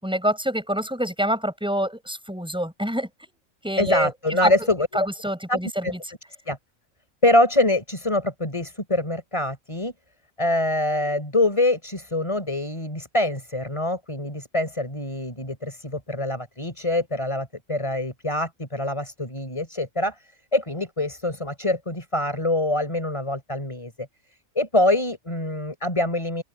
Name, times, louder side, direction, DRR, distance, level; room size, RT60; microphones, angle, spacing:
voice 1, 0.0-3.3 3.6-4.1 4.4-4.5 4.9-5.9, equal, 5° right, 7.4 m, -26 dB
voice 2, 3.8-4.9 5.5-5.9 6.5-6.6 7.2-9.9 10.4-20.2 20.5-23.9 24.5-26.4, left 1 dB, 20° left, 4.4 m, -24 dB
open air
omnidirectional pair, 1.5 m